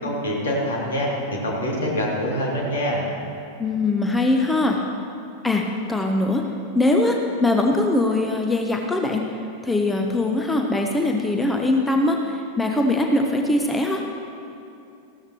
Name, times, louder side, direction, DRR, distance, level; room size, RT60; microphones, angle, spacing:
voice 1, 0.0-3.1, equal, 65° left, -3 dB, 2.5 m, -25 dB
voice 2, 3.6-4.8 5.4-6.4 6.7-9.4 9.6-14.0, left 2 dB, 10° left, 2 dB, 0.8 m, -21 dB
15.0 x 12.5 x 2.9 m, 2.6 s
figure-of-eight pair, 90°, 0 cm